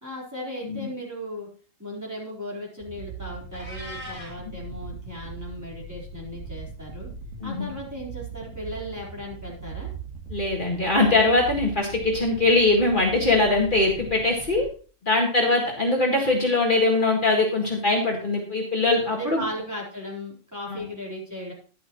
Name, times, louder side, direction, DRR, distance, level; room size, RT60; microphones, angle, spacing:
voice 1, 0.0-1.5 1.8-7.1 7.4-9.9 19.1-21.5, equal, 15° right, -3 dB, 4.1 m, -36 dB
sound 1, 2.8-14.7, right 5 dB, 85° right, 2.4 m, -40 dB
Meow, 3.5-4.4, left 1 dB, 60° left, 3.1 m, -39 dB
voice 2, 10.3-14.7 15.0-19.4 20.7-20.8, left 2 dB, 40° left, -1 dB, 1.9 m, -22 dB
11.5 x 11.0 x 3.1 m, 0.39 s
omnidirectional pair, 1.3 m